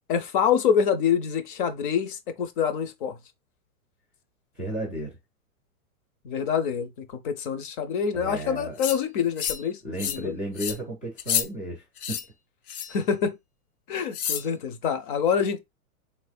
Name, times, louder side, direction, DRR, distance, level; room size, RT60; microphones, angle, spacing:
voice 1, 0.1-3.2 6.2-10.3 12.9-13.4 13.9-15.6, left 7 dB, 35° left, 0.7 m, -26 dB
voice 2, 4.6-5.2 8.1-8.8 9.8-12.2, right 1 dB, 10° left, 0.3 m, -33 dB
sound 1, 8.8-9.0 9.4-9.7 10.0-10.2 10.6-10.8 11.2-11.5 12.0-12.2 12.7-13.0 14.1-14.5, left 9 dB, 75° left, 0.8 m, -29 dB
3.3 x 3.3 x 2.4 m
hypercardioid pair, 140°, 45 cm